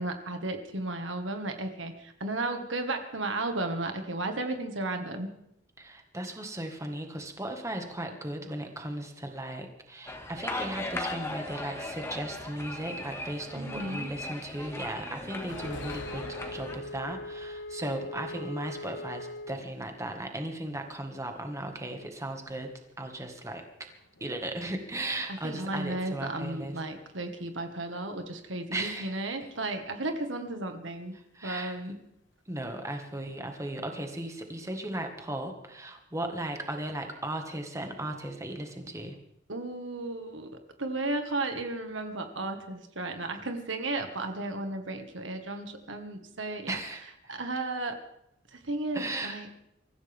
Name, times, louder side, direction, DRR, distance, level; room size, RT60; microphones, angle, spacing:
voice 1, 0.0-5.3 13.6-14.1 25.3-31.2 31.4-32.0 39.5-40.5 40.8-46.8 47.3-48.0 48.5-49.5, right 2 dB, 85° right, 6 dB, 1.8 m, -34 dB
voice 2, 5.8-22.7 23.0-23.7 24.2-26.8 28.7-29.3 31.3-31.7 32.5-39.2 46.7-47.3 48.9-49.4, right 1 dB, 15° right, 4 dB, 1.8 m, -36 dB
sound 1, 10.1-16.8, left 2 dB, 15° left, 2.0 m, -38 dB
sound 2, 15.3-19.9 20.2-20.3 21.5-21.7 23.9-25.1 26.1-26.3 26.8-26.9 27.3-27.4 29.3-29.4 30.1-30.2 32.5-32.8 33.3-33.7 34.2-34.7, left 3 dB, 75° left, 1.3 m, -49 dB
Wind instrument woodwind instrument, 15.6-19.7, left 1 dB, 55° left, 0.5 m, -41 dB
24.5 x 15.0 x 3.7 m, 0.78 s
head